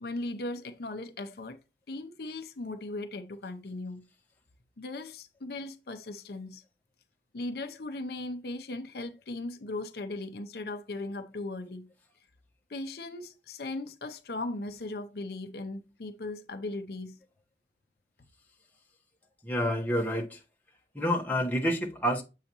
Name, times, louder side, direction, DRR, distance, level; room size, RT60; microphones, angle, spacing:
voice 1, 0.0-1.6 1.9-4.0 4.8-6.6 7.3-11.9 12.7-17.2, left 2 dB, 60° left, 0.6 m, -38 dB
voice 2, 19.4-20.4 20.9-22.2, equal, 10° left, 1.1 m, -28 dB
7.7 x 5.6 x 2.9 m
head